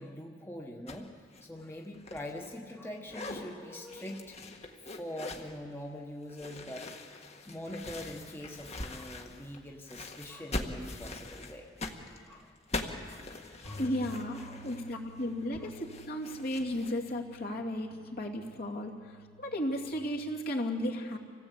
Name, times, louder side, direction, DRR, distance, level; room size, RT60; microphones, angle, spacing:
voice 1, 0.0-4.4 4.8-6.9 7.4-11.7 12.3-12.5 13.6-13.9 14.3-14.8 15.6-15.7, left 1 dB, 10° left, 0 dB, 1.3 m, -43 dB
sound 1, 0.9-1.1 1.3-2.8 3.0-3.4 3.9-5.5 6.3-9.6 9.9-16.9, left 2 dB, 35° left, 1.7 m, -42 dB
sound 2, 13.6-19.9, left 2 dB, 90° left, 4.5 m, -52 dB
voice 2, 13.8-21.2, left 1 dB, 55° left, 0 dB, 2.6 m, -34 dB
27.0 x 17.0 x 8.4 m, 2.1 s
head